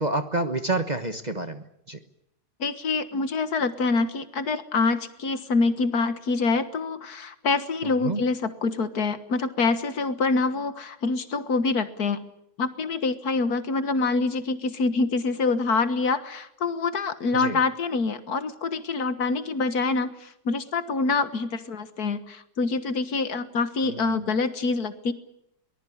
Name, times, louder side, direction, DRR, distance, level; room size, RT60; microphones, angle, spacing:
voice 1, 0.0-2.0 8.0-8.2 17.3-17.6 23.8-24.2, right 2 dB, 30° right, 8 dB, 1.2 m, -28 dB
voice 2, 2.6-12.2 12.6-25.1, left 4 dB, 65° left, 11 dB, 1.9 m, -26 dB
23.0 x 19.5 x 10.0 m, 0.78 s
omnidirectional pair, 1.8 m